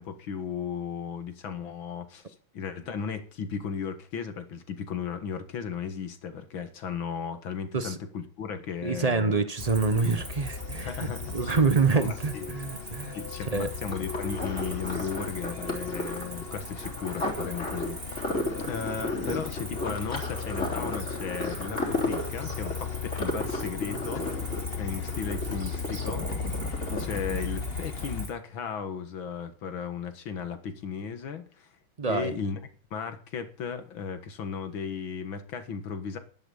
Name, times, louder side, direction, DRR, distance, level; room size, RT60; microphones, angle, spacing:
voice 1, 0.0-2.3 2.5-9.5 10.8-11.6 12.0-12.5 13.1-18.4 18.7-26.3 27.0-31.7 32.1-32.6 32.9-36.2, left 6 dB, 75° left, 2.3 m, -35 dB
voice 2, 8.8-13.2 13.5-13.7 32.0-32.3, right 4 dB, 65° right, 0.3 m, -26 dB
Truck, 9.6-28.3, left 6 dB, 55° left, 0.6 m, -37 dB
Cricket, 9.6-28.3, right 3 dB, 40° right, 3.0 m, -44 dB
sound 1, 13.9-27.7 28.0-28.1, left 1 dB, 35° left, 4.0 m, -34 dB
12.0 x 10.0 x 7.0 m
omnidirectional pair, 2.2 m